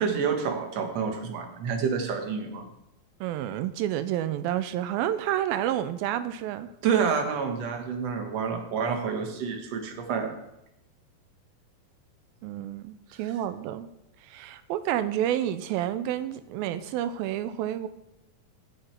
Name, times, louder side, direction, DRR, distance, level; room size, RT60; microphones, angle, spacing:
voice 1, 0.0-2.7 6.8-10.4, right 6 dB, 55° right, 4 dB, 2.0 m, -28 dB
voice 2, 3.2-6.7 12.4-13.9 14.2-17.9, right 11 dB, 90° right, 11 dB, 2.5 m, -29 dB
15.0 x 6.7 x 4.5 m, 0.88 s
omnidirectional pair, 4.1 m